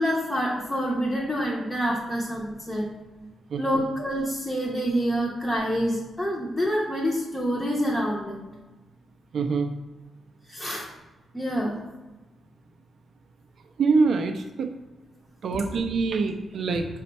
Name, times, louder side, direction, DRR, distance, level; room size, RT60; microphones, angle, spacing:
voice 1, 0.0-2.9 3.6-8.4 10.5-10.8 11.3-11.8 15.5-15.6, equal, 10° left, -3 dB, 0.5 m, -27 dB
voice 2, 3.5-3.8 9.3-9.7 13.8-14.7 15.4-16.9, right 4 dB, 55° right, 6 dB, 0.3 m, -25 dB
5.1 x 2.2 x 4.0 m, 1.2 s
wide cardioid pair, 150°, 0 cm